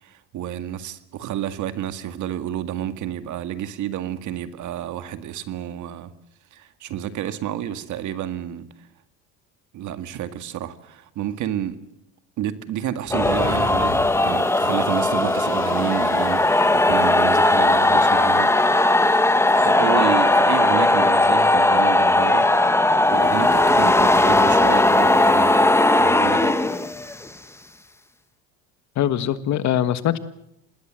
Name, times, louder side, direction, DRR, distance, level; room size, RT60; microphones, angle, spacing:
voice 1, 0.0-6.1 6.5-8.7 9.7-11.8 12.4-18.5 19.5-25.7 26.0-26.6, right 11 dB, 60° right, 2.0 m, -30 dB
sound 1, 13.0-17.9, left 8 dB, 35° left, 1.5 m, -37 dB
sound 2, 13.1-27.3, left 2 dB, 10° left, 1.2 m, -18 dB
voice 2, 28.9-30.2, left 11 dB, 55° left, 1.6 m, -22 dB
26.5 x 19.5 x 7.7 m
supercardioid pair, 100°, 33 cm